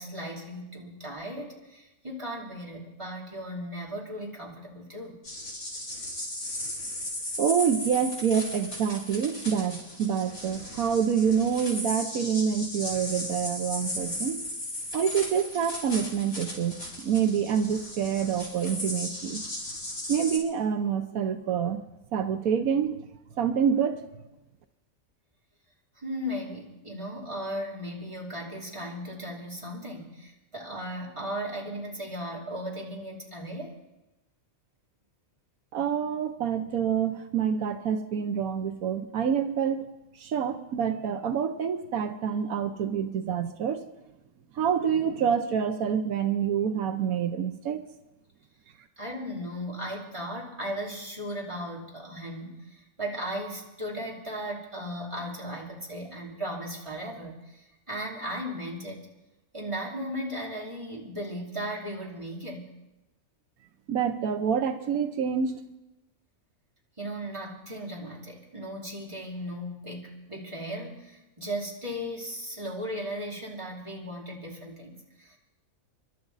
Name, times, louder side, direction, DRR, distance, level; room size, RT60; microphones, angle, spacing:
voice 1, 0.0-5.2 26.0-33.7 49.0-59.1 59.5-62.7 67.0-75.4, equal, 20° right, -2 dB, 3.0 m, -36 dB
sound 1, 5.2-20.4, left 1 dB, 75° left, 5.3 m, -36 dB
voice 2, 7.4-14.4 14.9-19.4 20.1-21.8 22.1-23.0 23.4-24.0 35.7-39.9 40.1-43.9 44.5-47.8 63.9-65.6, right 7 dB, 85° right, 8 dB, 1.3 m, -27 dB
29.0 x 12.0 x 4.1 m, 1.0 s
omnidirectional pair, 1.5 m